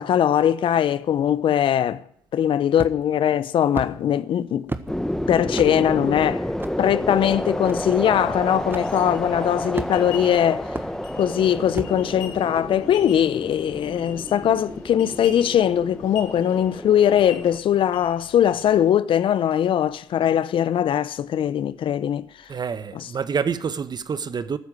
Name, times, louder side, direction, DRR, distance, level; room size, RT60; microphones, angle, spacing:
voice 1, 0.0-2.0 2.3-4.7 5.3-6.5 6.8-10.7 11.2-22.3, left 10 dB, 65° left, 0.8 m, -21 dB
sound 1, 2.8-3.2 3.7-3.9 4.7-4.9 5.5-5.7 6.6-6.8 7.6-7.7 8.7-8.9 9.7-10.2 10.7-10.9 11.7-12.0, right 2 dB, 20° right, 1.5 m, -31 dB
sound 2, 4.9-17.6, left 1 dB, 5° left, 1.4 m, -30 dB
sound 3, 8.5-18.9, left 7 dB, 85° left, 2.0 m, -45 dB
voice 2, 22.5-24.6, right 6 dB, 45° right, 1.2 m, -27 dB
14.0 x 9.6 x 9.5 m
hypercardioid pair, 45°, 10 cm